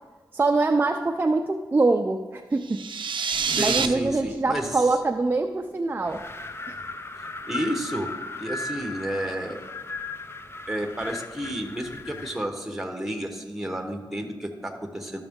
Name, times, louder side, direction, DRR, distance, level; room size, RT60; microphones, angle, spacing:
voice 1, 0.3-2.8 3.5-6.2 6.7-6.8, right 3 dB, 25° right, 5 dB, 0.4 m, -24 dB
sound 1, 2.6-3.9, right 6 dB, 85° right, 0.5 m, -26 dB
sound 2, 3.3-6.9, equal, 80° left, 2.4 m, -46 dB
voice 2, 3.6-4.9 7.2-8.1 8.4-9.6 10.7-15.2, right 1 dB, 5° right, 4 dB, 1.0 m, -31 dB
Wind, 6.0-12.5, left 3 dB, 30° left, 0.5 m, -37 dB
12.5 x 6.1 x 3.6 m, 1.4 s
wide cardioid pair, 95°, 8 cm